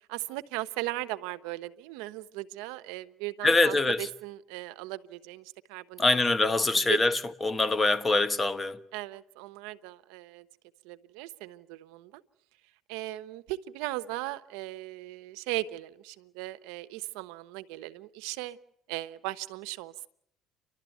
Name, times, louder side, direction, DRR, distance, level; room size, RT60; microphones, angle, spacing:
voice 1, 0.1-6.0 6.4-7.0 8.9-10.5 10.8-12.2 12.9-18.6 18.9-20.1, right 17 dB, 85° right, 0.9 m, -38 dB
voice 2, 3.4-4.1 6.0-8.8, left 2 dB, 20° left, 1.4 m, -24 dB
30.0 x 12.5 x 9.2 m
cardioid pair, 110°, 0 cm